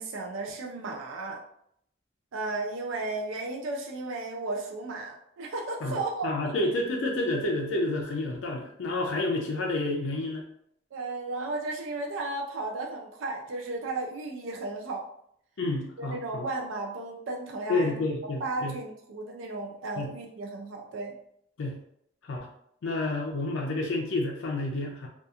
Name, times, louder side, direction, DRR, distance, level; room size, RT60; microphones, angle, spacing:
voice 1, 0.0-1.4 2.3-6.3 10.9-15.0 16.0-18.0 18.4-21.1, right 2 dB, 90° right, 0 dB, 0.4 m, -34 dB
voice 2, 5.8-10.4 15.6-16.5 17.7-18.8 20.0-20.1 21.6-21.8 22.2-22.5 22.8-25.1, left 2 dB, 85° left, 0 dB, 0.4 m, -29 dB
2.8 x 2.3 x 2.3 m, 0.72 s
head